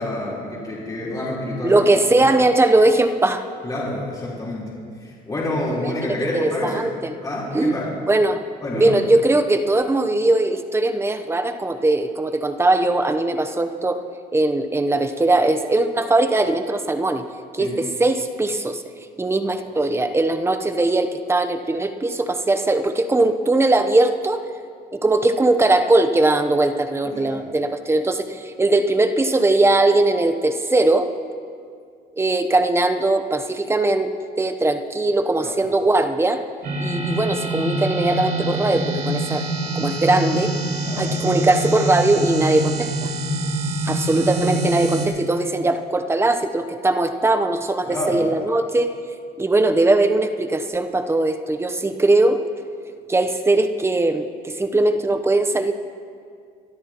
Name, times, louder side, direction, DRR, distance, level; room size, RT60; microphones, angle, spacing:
voice 1, 0.0-2.3 3.6-4.7 5.0-6.9 7.2-8.0 8.6-9.0 17.6-17.7 19.4-19.5 27.1-27.4 35.4-35.5 40.8-41.1 47.8-48.2, left 1 dB, 20° left, -6 dB, 3.8 m, -28 dB
voice 2, 1.6-3.4 5.8-5.9 6.3-7.1 7.5-7.8 8.1-8.4 8.7-14.0 14.3-17.2 17.5-18.8 19.2-24.4 24.9-31.1 32.2-34.1 34.4-36.4 36.8-39.4 39.7-40.5 41.0-43.1 43.9-48.9 49.4-52.4 53.1-55.7, right 2 dB, 15° right, 8 dB, 0.8 m, -20 dB
sound 1, 36.6-45.1, right 1 dB, 65° right, 2.6 m, -25 dB
24.0 x 13.0 x 3.0 m, 2.2 s
cardioid pair, 110°, 17 cm